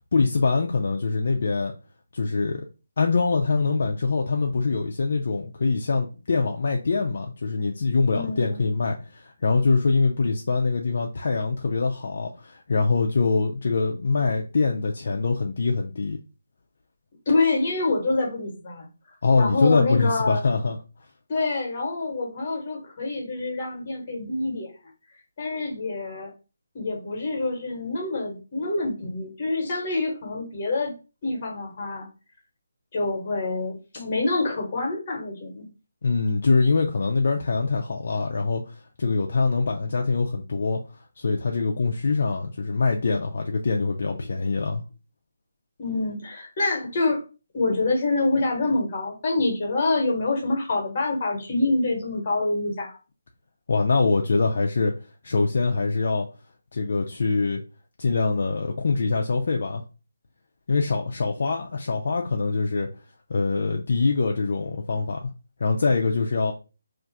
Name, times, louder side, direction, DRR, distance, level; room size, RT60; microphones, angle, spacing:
voice 1, 0.1-1.7 2.1-2.6 3.0-16.2 19.2-20.8 36.0-40.8 41.2-44.8 53.7-54.9 55.2-56.3 56.7-57.6 58.0-59.8 60.7-62.9 63.3-65.3 65.6-66.5, left 4 dB, 50° left, 0.4 m, -24 dB
voice 2, 8.1-8.6 17.3-18.9 19.4-20.4 21.3-24.7 25.4-26.3 26.7-30.9 31.2-32.1 32.9-35.6 45.8-47.2 47.5-53.0, left 2 dB, 25° left, 1.1 m, -26 dB
2.5 x 2.3 x 4.0 m
hypercardioid pair, 175°, 0 cm